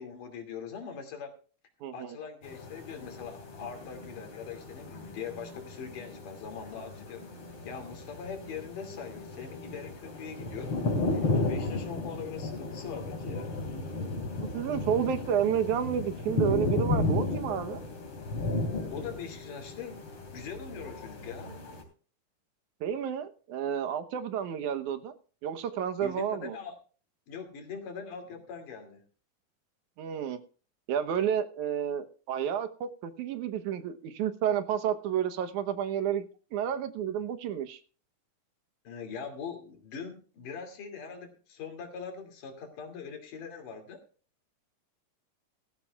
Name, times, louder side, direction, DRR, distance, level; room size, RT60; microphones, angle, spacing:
voice 1, 0.0-1.3 1.9-7.3 7.7-10.7 11.1-13.6 18.9-21.5 26.0-26.8 27.3-29.0 38.8-44.0, left 6 dB, 80° left, 4 dB, 4.1 m, -42 dB
voice 2, 1.8-2.2 14.5-17.8 22.8-25.1 25.4-26.6 30.0-30.4 30.9-37.8, right 9 dB, 75° right, 10 dB, 2.4 m, -30 dB
sound 1, 2.4-21.8, left 2 dB, 45° left, 4.1 m, -34 dB
17.0 x 14.5 x 2.3 m, 0.39 s
omnidirectional pair, 3.7 m